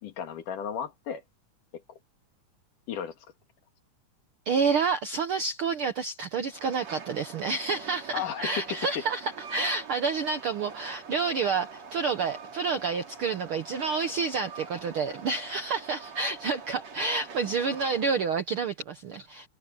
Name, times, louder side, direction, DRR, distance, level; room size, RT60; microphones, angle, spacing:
voice 1, 0.0-1.2 1.7-1.8 2.9-3.2 8.1-8.6, left 8 dB, 75° left, 3.6 m, -34 dB
voice 2, 4.4-19.5, right 5 dB, 70° right, 1.3 m, -29 dB
Train, 6.5-18.4, right 5 dB, 55° right, 3.9 m, -45 dB
omnidirectional pair, 3.8 m